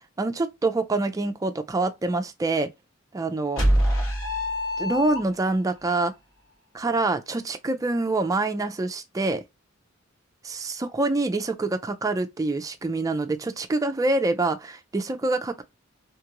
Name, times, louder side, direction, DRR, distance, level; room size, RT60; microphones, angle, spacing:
voice 1, 0.2-2.7 3.1-3.6 4.8-6.1 6.7-9.4 10.4-15.6, right 2 dB, 15° right, 0.3 m, -26 dB
sound 1, 3.6-5.7, equal, 85° left, 1.5 m, -24 dB
2.9 x 2.4 x 2.9 m
head